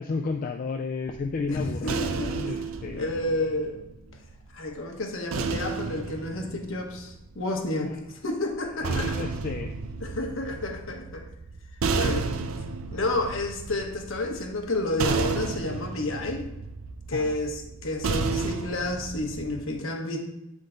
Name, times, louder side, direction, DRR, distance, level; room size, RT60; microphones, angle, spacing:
voice 1, 0.0-3.1 7.8-8.0 8.8-9.7 17.1-17.3, left 4 dB, 40° left, 4 dB, 0.3 m, -32 dB
sound 1, 1.1-4.4 5.3-7.6 8.5-19.6, right 4 dB, 70° right, 0.5 m, -32 dB
voice 2, 1.5-1.9 2.2-2.3 3.0-3.8 4.5-9.3 10.0-11.2 11.9-12.3 12.9-16.4 17.1-20.2, left 2 dB, 65° left, 2 dB, 1.1 m, -30 dB
7.9 x 3.7 x 3.8 m, 0.91 s
head